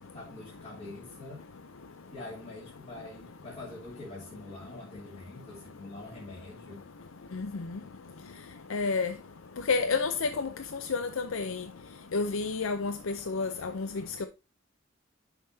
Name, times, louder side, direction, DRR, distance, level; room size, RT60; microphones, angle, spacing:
voice 1, 0.1-1.4 2.0-6.9, left 2 dB, 30° left, 2.7 m, -45 dB
voice 2, 7.3-7.8 8.7-9.1 9.7-10.5 10.9-11.6 12.1-13.9 14.2-14.3, left 4 dB, 75° left, 0.6 m, -30 dB
10.5 x 6.0 x 2.7 m
head